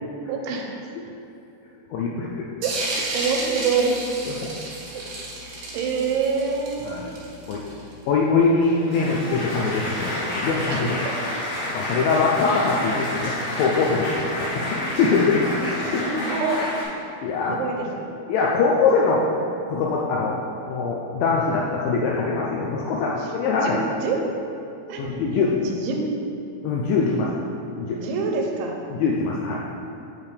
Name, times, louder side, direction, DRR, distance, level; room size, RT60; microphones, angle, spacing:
voice 1, 0.3-0.7 2.6-2.7 3.1-4.0 4.4-4.5 5.7-7.0 10.7-11.1 15.6-16.6 17.5-18.1 19.0-19.1 23.2-23.7 24.0-24.2 24.9-26.0 28.0-28.8, right 5 dB, 85° right, 1 dB, 2.7 m, -26 dB
voice 2, 1.9-2.5 6.9-7.1 7.5-7.6 8.1-11.0 11.7-15.6 15.9-16.1 17.2-17.6 18.3-19.2 19.7-20.4 20.7-23.8 25.0-25.5 26.6-27.4 27.8-28.0 28.9-29.6, left 4 dB, 85° left, -3 dB, 2.0 m, -23 dB
sound 1, 2.6-7.9, right 2 dB, 65° right, 2.9 m, -31 dB
Applause, 8.4-16.8, left 1 dB, 65° left, 3.2 m, -29 dB
8.4 x 4.6 x 3.3 m, 2.7 s
omnidirectional pair, 4.6 m